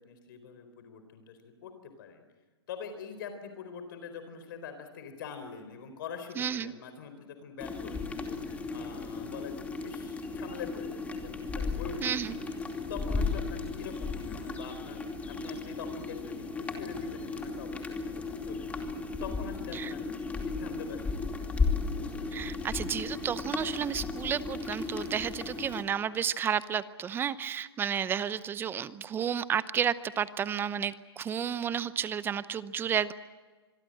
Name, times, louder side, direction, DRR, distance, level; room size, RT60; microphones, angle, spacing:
voice 1, 0.0-2.2 2.7-8.4 8.7-11.0 11.4-12.6 12.9-15.0 15.3-18.6 19.2-20.1 20.4-21.5 28.0-28.1, left 6 dB, 50° left, 8 dB, 4.2 m, -44 dB
voice 2, 6.4-6.7 12.0-12.4 19.7-19.9 22.3-33.1, right 8 dB, 15° right, 16 dB, 0.7 m, -32 dB
sound 1, 7.6-25.8, left 4 dB, 10° left, 2.7 m, -35 dB
26.0 x 22.0 x 7.9 m, 1.3 s
hypercardioid pair, 125°, 14 cm